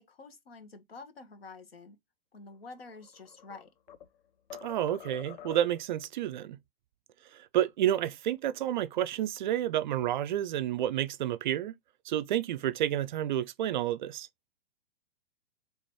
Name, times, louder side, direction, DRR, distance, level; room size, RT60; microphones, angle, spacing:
voice 1, 0.0-2.0 2.3-3.7, left 3 dB, 80° left, 1.1 m, -48 dB
sound 1, 2.8-4.2 4.5-5.9, left 10 dB, 55° left, 0.5 m, -47 dB
voice 2, 4.6-6.6 7.3-11.7 12.1-14.3, right 11 dB, 50° right, 0.4 m, -30 dB
3.4 x 3.0 x 4.3 m
figure-of-eight pair, 110°, 30 cm